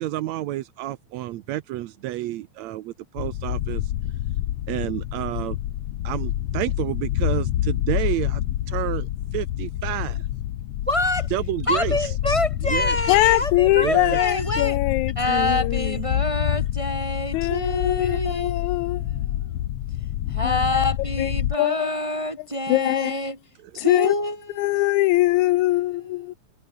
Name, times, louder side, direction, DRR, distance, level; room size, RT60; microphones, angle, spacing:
voice 1, 0.0-3.8 4.7-5.6 6.1-8.4 8.7-9.1 9.3-10.2 11.3-11.9 12.7-12.9 13.8-14.2, right 15 dB, 75° right, 1.9 m, -29 dB
sound 1, 3.2-21.6, left 13 dB, 65° left, 1.9 m, -27 dB
voice 2, 10.9-11.3 11.6-14.8 15.2-19.7 20.3-23.4 23.7-24.4 24.6-25.2, left 1 dB, 20° right, 0.9 m, -27 dB
voice 3, 13.1-16.3 17.3-19.0 20.4-21.9 22.7-23.2 23.8-24.2 24.5-26.3, left 17 dB, 80° left, 2.0 m, -22 dB
omnidirectional pair, 3.4 m